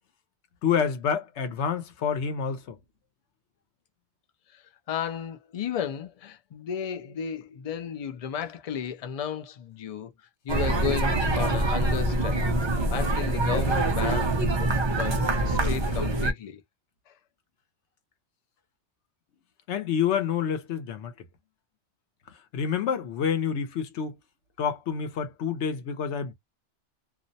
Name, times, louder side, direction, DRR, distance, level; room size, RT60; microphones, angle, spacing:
voice 1, 0.6-2.8 19.7-21.1 22.5-24.1 24.6-26.3, left 7 dB, 85° left, 1.0 m, -28 dB
voice 2, 4.9-10.1 10.4-12.4 12.9-14.5 14.9-16.6 17.1-17.2, left 8 dB, 60° left, 0.4 m, -33 dB
sound 1, 10.5-16.3, right 2 dB, 40° right, 0.4 m, -25 dB
2.4 x 2.1 x 2.6 m
omnidirectional pair, 1.1 m